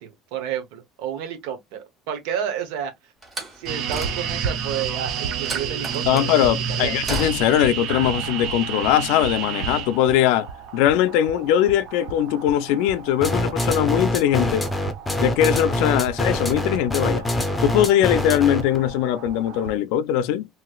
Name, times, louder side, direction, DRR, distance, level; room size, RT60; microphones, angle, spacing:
voice 1, 0.0-1.8 2.1-2.9 3.5-7.0, right 9 dB, 85° right, 0.9 m, -31 dB
Slam, 3.2-4.6 5.4-6.3 7.1-7.7, right 1 dB, 20° right, 1.3 m, -33 dB
sound 1, 3.7-19.8, right 7 dB, 60° right, 0.7 m, -31 dB
voice 2, 6.1-10.5 10.7-14.7 15.2-17.3 17.6-20.5, left 11 dB, 80° left, 0.4 m, -21 dB
sound 2, 13.2-18.8, left 1 dB, 10° left, 0.6 m, -24 dB
3.0 x 3.0 x 2.3 m
cardioid pair, 155°, 0 cm